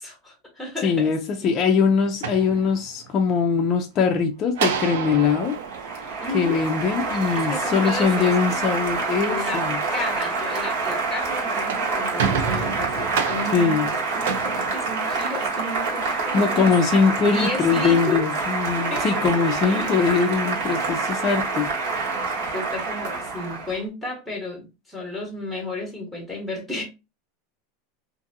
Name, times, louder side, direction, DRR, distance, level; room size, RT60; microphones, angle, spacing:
voice 1, 0.0-1.1 6.2-6.6 7.3-8.3 9.2-9.6 9.9-16.7 17.2-18.3 18.8-19.9 22.5-26.8, left 2 dB, ahead, 0.9 m, -33 dB
voice 2, 0.8-5.6 6.3-9.8 13.5-13.9 16.3-21.7, left 5 dB, 30° left, 0.4 m, -22 dB
sound 1, 2.0-3.2 4.5-7.0 11.4-15.5, right 6 dB, 85° right, 0.5 m, -30 dB
Applause, 4.9-23.8, right 4 dB, 65° right, 1.1 m, -27 dB
2.6 x 2.5 x 2.6 m
supercardioid pair, 160°, 0 cm